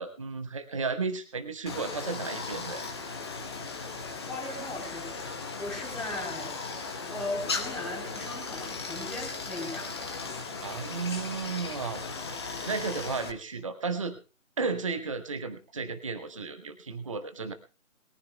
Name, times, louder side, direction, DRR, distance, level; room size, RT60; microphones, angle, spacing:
voice 1, 0.0-2.9 10.6-12.2 12.7-14.2 14.6-17.5, right 4 dB, 25° right, 9 dB, 0.8 m, -33 dB
Stream, 1.7-13.3, left 4 dB, 20° left, 1.0 m, -37 dB
voice 2, 4.3-6.5 7.1-9.9, left 2 dB, ahead, -6 dB, 3.3 m, -38 dB
22.0 x 14.0 x 2.2 m, 0.34 s
figure-of-eight pair, 150°, 41 cm